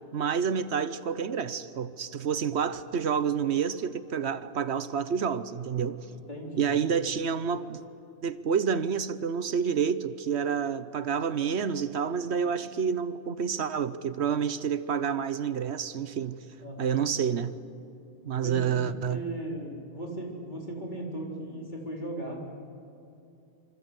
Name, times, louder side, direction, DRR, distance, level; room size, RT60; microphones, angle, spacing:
voice 1, 0.1-6.0 6.6-7.8 8.2-16.4 16.8-17.6 18.2-19.2, right 7 dB, 70° right, 1.2 m, -29 dB
voice 2, 6.1-6.7 16.6-17.1 18.4-22.6, right 1 dB, 40° left, 4.5 m, -37 dB
27.5 x 25.0 x 8.2 m
omnidirectional pair, 1.2 m